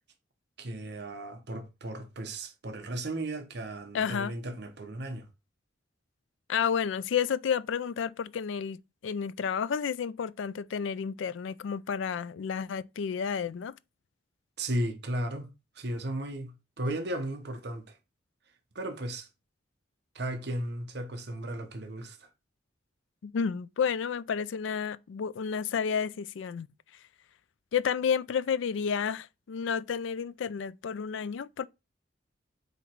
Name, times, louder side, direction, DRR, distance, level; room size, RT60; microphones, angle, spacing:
voice 1, 0.6-5.3 14.6-15.5 15.7-18.0 18.7-19.3 20.1-22.3, right 1 dB, 60° right, 1.0 m, -35 dB
voice 2, 3.9-4.3 6.5-13.7 23.2-26.7 27.7-31.7, left 7 dB, 75° left, 0.4 m, -31 dB
7.8 x 3.0 x 4.5 m
head